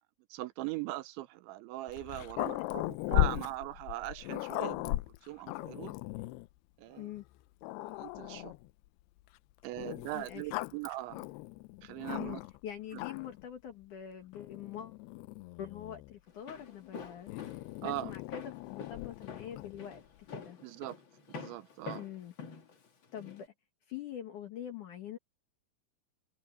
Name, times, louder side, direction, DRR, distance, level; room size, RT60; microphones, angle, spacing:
voice 1, 0.3-6.0 6.8-7.1 7.8-8.5 9.6-11.3 11.8-12.4 17.8-18.1 20.6-21.0 21.3-22.0, right 17 dB, 90° right, 3.2 m, -40 dB
Growling, 1.9-6.5 7.2-7.3 7.6-8.7 9.8-12.6 12.9-13.5 14.3-16.2 17.3-19.8, left 18 dB, 80° left, 2.4 m, -37 dB
voice 2, 2.2-2.5 7.0-7.2 10.1-10.4 12.1-14.9 15.6-20.0 20.3-20.6 22.0-22.3 23.1-23.5 23.9-25.2, left 10 dB, 60° left, 2.3 m, -44 dB
Walk footsteps, 16.3-23.4, left 5 dB, 45° left, 1.7 m, -46 dB
omnidirectional pair, 5.2 m